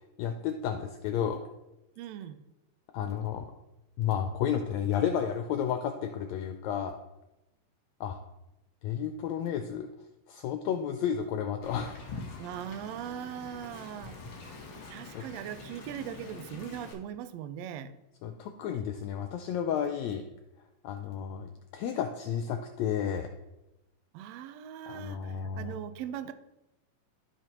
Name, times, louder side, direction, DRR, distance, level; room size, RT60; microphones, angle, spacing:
voice 1, 0.2-1.4 2.9-3.5 4.0-7.0 8.0-8.2 8.8-9.9 10.3-12.0 15.1-15.2 18.2-20.2 20.8-23.3 24.9-25.8, left 8 dB, 80° left, 6 dB, 1.7 m, -32 dB
voice 2, 2.0-2.4 12.4-14.2 14.9-17.9 24.1-26.3, right 10 dB, 85° right, 10 dB, 1.5 m, -40 dB
Wind, 11.6-16.9, left 3 dB, 55° left, 1.7 m, -45 dB
14.0 x 5.0 x 3.0 m, 0.93 s
omnidirectional pair, 3.5 m